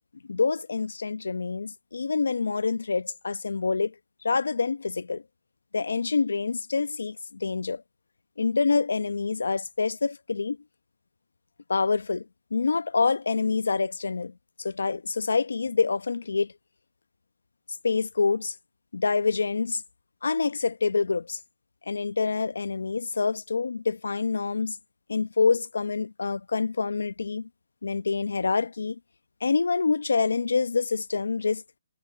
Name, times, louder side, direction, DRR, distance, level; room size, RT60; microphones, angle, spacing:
voice 1, 0.3-3.9 4.2-5.2 5.7-7.8 8.4-10.6 11.7-12.3 12.5-14.3 14.6-16.5 17.8-18.5 18.9-19.8 20.2-21.4 21.9-24.8 25.1-27.5 27.8-29.0 29.4-31.6, left 4 dB, 80° left, 1.0 m, -26 dB
hypercardioid pair, 160°, 0 cm